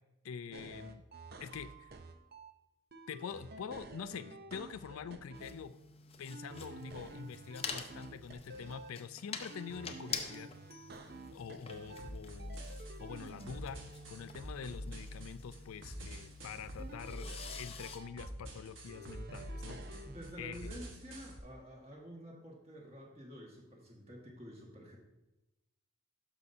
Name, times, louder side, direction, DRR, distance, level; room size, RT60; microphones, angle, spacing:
voice 1, 0.2-1.0 1.4-1.9 3.1-5.8 6.2-10.5 11.3-12.6 13.0-13.8 14.1-20.1 20.4-20.7, left 6 dB, 85° left, 12 dB, 0.4 m, -45 dB
sound 1, 0.5-2.5 2.9-5.5 6.3-8.9 9.5-12.1 12.4-15.3 16.8-18.3 18.9-20.3, right 2 dB, 45° right, 0.6 m, -50 dB
sound 2, 5.3-18.0, left 6 dB, 25° left, 0.5 m, -48 dB
sound 3, 12.0-21.4, equal, 65° right, 1.4 m, -47 dB
voice 2, 20.0-25.0, equal, 30° right, -1 dB, 1.6 m, -50 dB
12.0 x 5.5 x 2.7 m, 0.98 s
head